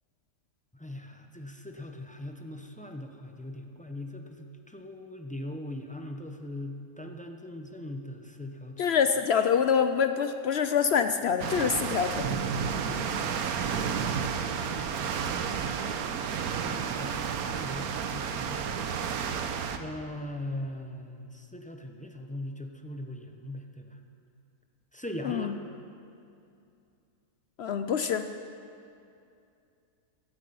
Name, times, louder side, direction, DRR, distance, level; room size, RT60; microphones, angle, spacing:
voice 1, 0.8-8.9 12.3-12.8 14.5-15.6 16.6-18.9 19.8-24.0 24.9-25.5, left 1 dB, 10° left, 3 dB, 0.4 m, -40 dB
voice 2, 8.8-12.1 25.2-25.5 27.6-28.3, left 7 dB, 70° left, 9 dB, 0.6 m, -25 dB
sound 1, 11.4-19.8, right 7 dB, 75° right, 1.2 m, -31 dB
15.0 x 13.5 x 5.5 m, 2.5 s
omnidirectional pair, 1.6 m